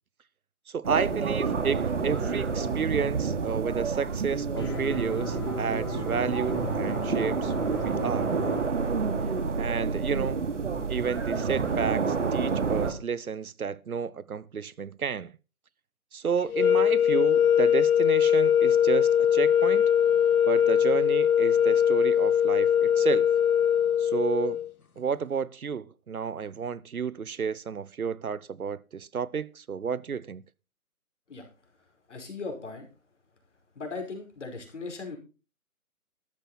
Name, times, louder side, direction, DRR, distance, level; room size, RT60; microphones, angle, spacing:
voice 1, 0.7-8.3 9.6-10.4 10.9-15.3 16.1-19.9 20.5-23.3 24.0-24.6 25.0-30.4, right 6 dB, 70° right, 1.0 m, -31 dB
sound 1, 0.8-12.9, right 5 dB, 55° right, 2.9 m, -29 dB
sound 2, 4.5-8.7, left 6 dB, 15° left, 1.5 m, -37 dB
sound 3, 16.5-24.7, left 9 dB, 75° left, 1.9 m, -21 dB
voice 2, 32.1-32.9 33.8-35.2, left 3 dB, 50° left, 5.3 m, -38 dB
13.5 x 11.5 x 4.2 m
hypercardioid pair, 170°, 44 cm